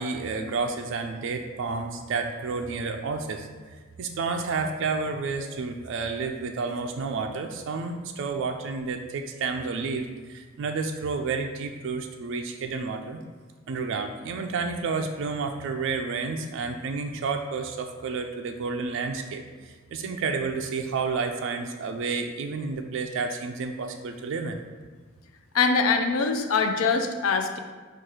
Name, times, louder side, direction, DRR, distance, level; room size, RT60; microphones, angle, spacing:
voice 1, 0.0-3.5 4.0-13.2 13.7-24.6, right 4 dB, 65° right, 4 dB, 0.3 m, -30 dB
voice 2, 25.5-27.6, left 4 dB, 75° left, 6 dB, 0.4 m, -23 dB
4.4 x 2.4 x 4.7 m, 1.5 s
head